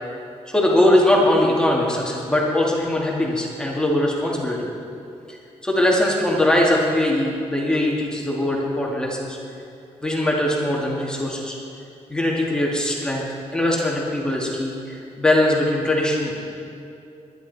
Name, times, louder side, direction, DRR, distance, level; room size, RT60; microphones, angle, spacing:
voice 1, 0.5-4.7 5.3-5.4 5.6-9.4 10.0-11.6 12.1-13.2 13.5-16.4, left 1 dB, 5° left, -3 dB, 2.1 m, -21 dB
22.5 x 11.0 x 4.1 m, 2.7 s
wide cardioid pair, 140°, 12 cm